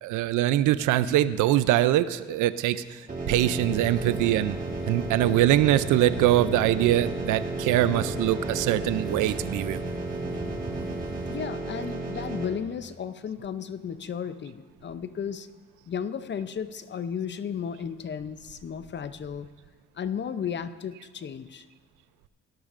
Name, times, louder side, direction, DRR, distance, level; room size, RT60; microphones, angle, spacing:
voice 1, 0.0-3.0 3.3-4.6 4.9-9.8, right 13 dB, 85° right, 15 dB, 0.5 m, -23 dB
sound 1, 3.1-12.4, right 2 dB, 30° right, 3.6 m, -33 dB
sound 2, 3.5-11.4, right 2 dB, 15° right, 1.1 m, -38 dB
voice 2, 11.3-15.5 15.9-19.5 20.0-21.7, left 7 dB, 40° left, 13 dB, 0.6 m, -34 dB
17.5 x 12.0 x 2.5 m, 1.5 s
cardioid pair, 90°, 30 cm